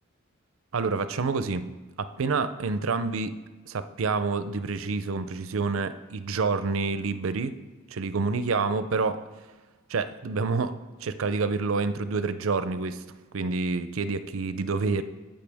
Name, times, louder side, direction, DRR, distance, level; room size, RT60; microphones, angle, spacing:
voice 1, 0.7-1.7 2.0-3.3 3.7-7.5 7.9-9.2 9.9-10.7 11.0-13.0 13.3-15.0, right 4 dB, 80° right, 12 dB, 0.5 m, -28 dB
15.5 x 5.7 x 3.5 m, 1.3 s
head